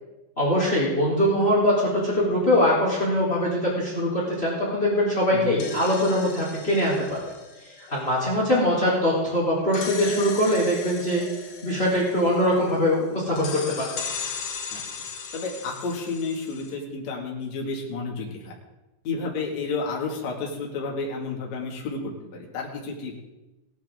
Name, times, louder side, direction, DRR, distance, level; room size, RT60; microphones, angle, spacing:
voice 1, 0.4-7.2 7.9-11.2 11.6-13.9, equal, 15° left, -4 dB, 3.4 m, -22 dB
sound 1, 5.4-9.0 9.7-12.9 13.4-16.7, left 6 dB, 80° left, 4.7 m, -38 dB
voice 2, 15.3-18.5 19.0-23.2, left 4 dB, 45° left, -2 dB, 2.9 m, -31 dB
18.0 x 11.0 x 3.9 m, 1.0 s
omnidirectional pair, 5.5 m